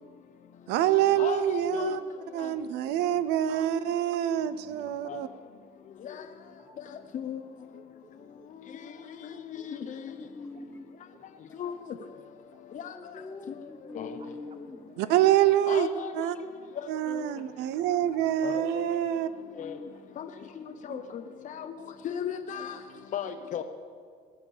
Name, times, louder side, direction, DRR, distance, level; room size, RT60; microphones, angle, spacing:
voice 1, 0.7-2.0 2.3-5.3 15.0-15.9 16.1-16.4 16.9-19.3 20.9-21.0, right 11 dB, 90° right, 15 dB, 0.6 m, -26 dB
voice 2, 1.2-2.0 2.4-2.5 5.1-5.2 6.0-6.2 7.1-7.4 9.5-10.0 11.6-11.8 12.7-12.9 13.9-14.2 15.7-16.3 16.8-17.2 18.4-18.8 19.6-19.7 20.2-20.3 20.9-21.7 22.0-22.8 23.1-23.6, left 8 dB, 50° left, 7 dB, 0.7 m, -35 dB
voice 3, 2.8-3.6 4.7-5.3 6.6-6.8 7.2-7.3 7.7-8.7 8.9-10.8 11.1-11.5 11.8-11.9 12.2-12.6 14.2-14.3 14.7-15.3 16.2-16.3 17.8-18.0 19.9-20.1 21.1-21.2 21.5-21.9 22.5-23.4, right 4 dB, 35° right, 9 dB, 1.1 m, -58 dB
voice 4, 10.2-10.8 12.9-15.4 18.3-18.4 19.6-19.9, left 2 dB, 15° left, 7 dB, 0.9 m, -44 dB
18.5 x 7.2 x 6.8 m, 2.1 s
cardioid pair, 110°, 17 cm